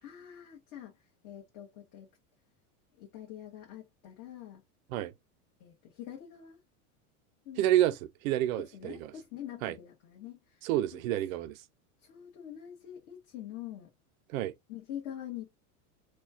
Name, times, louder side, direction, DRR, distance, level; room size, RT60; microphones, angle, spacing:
voice 1, 0.0-2.1 3.0-4.6 5.6-6.6 7.4-7.7 8.7-11.0 12.0-13.9 14.7-15.5, left 11 dB, 40° left, 1.3 m, -45 dB
voice 2, 7.6-9.1 9.6-9.8 10.6-11.5 14.3-14.5, right 13 dB, 65° right, 0.6 m, -29 dB
4.2 x 2.3 x 2.8 m
supercardioid pair, 145°, 45 cm